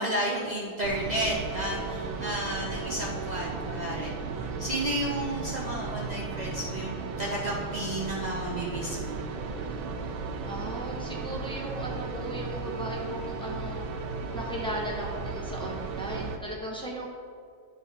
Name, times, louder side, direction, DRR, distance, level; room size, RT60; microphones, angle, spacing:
voice 1, 0.0-9.2, right 1 dB, 60° right, -4 dB, 0.4 m, -32 dB
sound 1, 0.8-16.4, right 4 dB, 85° right, 1.6 m, -35 dB
voice 2, 10.4-13.8 14.3-17.1, equal, 5° left, -4 dB, 1.0 m, -37 dB
11.5 x 5.2 x 4.2 m, 2.2 s
omnidirectional pair, 2.1 m